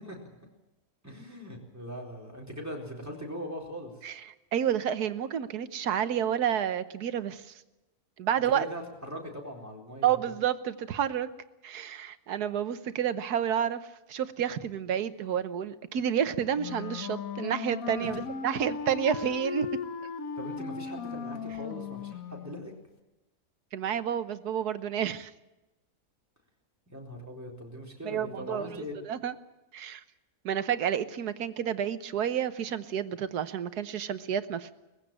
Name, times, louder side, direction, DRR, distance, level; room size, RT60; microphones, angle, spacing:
voice 1, 1.0-3.9 8.5-10.2 18.0-18.2 20.4-22.7 26.9-28.9, equal, 10° right, 0 dB, 4.1 m, -40 dB
voice 2, 4.5-7.6 8.2-8.6 10.0-11.3 11.6-19.7 23.7-25.3 28.0-29.3 29.7-30.0 30.4-34.7, right 9 dB, 85° right, 12 dB, 1.5 m, -30 dB
Wind instrument woodwind instrument, 16.5-22.8, left 6 dB, 65° left, 1.5 m, -37 dB
20.0 x 15.5 x 9.0 m, 1.0 s
omnidirectional pair, 1.6 m